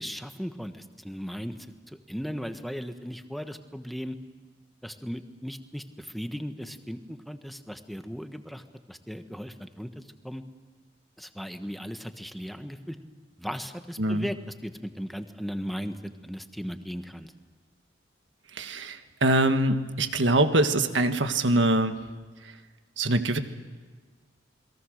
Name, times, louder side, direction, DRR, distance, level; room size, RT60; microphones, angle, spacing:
voice 1, 0.0-1.6 1.9-4.2 4.8-10.4 11.2-13.0 13.4-17.3, equal, ahead, 7 dB, 1.3 m, -37 dB
voice 2, 18.6-22.0 23.0-23.4, right 2 dB, 75° right, 7 dB, 1.7 m, -23 dB
29.0 x 22.0 x 6.5 m, 1.5 s
head